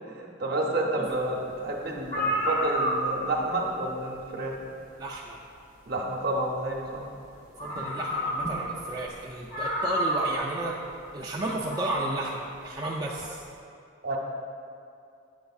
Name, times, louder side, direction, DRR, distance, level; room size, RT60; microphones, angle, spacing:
voice 1, 0.1-4.5 5.9-7.1 7.7-7.8 14.0-14.2, right 2 dB, 50° right, -1 dB, 0.7 m, -30 dB
sound 1, 1.7-1.8 2.0-3.4 4.8-4.9 7.1-7.2 7.6-8.8 9.1-9.2 9.5-10.5 11.5-12.1, equal, 40° left, 0.9 m, -29 dB
voice 2, 5.0-5.4 7.6-10.7 11.1-13.4, right 2 dB, 20° right, -5 dB, 0.3 m, -33 dB
7.9 x 6.3 x 2.4 m, 2.4 s
head